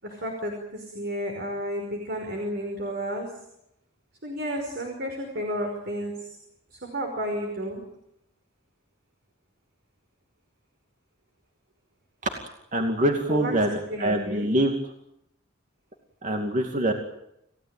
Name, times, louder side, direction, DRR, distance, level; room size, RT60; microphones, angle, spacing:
voice 1, 0.0-3.3 4.2-6.4 6.7-7.8 13.3-13.5 13.9-14.5, equal, 55° right, 3 dB, 5.2 m, -32 dB
voice 2, 12.7-14.7 16.2-16.9, right 1 dB, 40° right, 4 dB, 2.5 m, -24 dB
28.5 x 16.5 x 9.1 m, 0.81 s
head